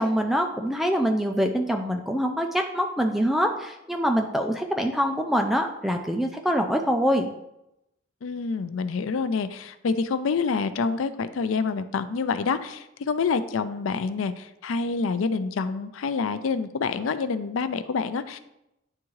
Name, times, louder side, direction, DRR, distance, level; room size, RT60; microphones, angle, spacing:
voice 1, 0.0-7.3, equal, ahead, 3 dB, 0.3 m, -24 dB
voice 2, 8.2-18.4, left 5 dB, 90° left, 12 dB, 0.4 m, -27 dB
9.7 x 3.6 x 3.1 m, 0.86 s
head